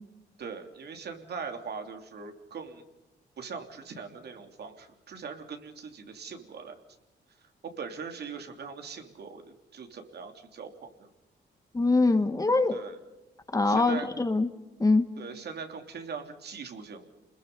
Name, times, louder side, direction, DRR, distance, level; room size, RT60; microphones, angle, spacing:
voice 1, 0.4-2.8 3.4-6.8 7.6-11.1 12.7-12.9 13.6-14.1 15.2-17.0, right 5 dB, 65° right, 5 dB, 3.1 m, -41 dB
voice 2, 11.7-12.8 13.5-14.5 14.8-15.1, left 3 dB, 20° left, 9 dB, 1.5 m, -23 dB
30.0 x 21.0 x 5.5 m, 1.0 s
cardioid pair, 125°, 19 cm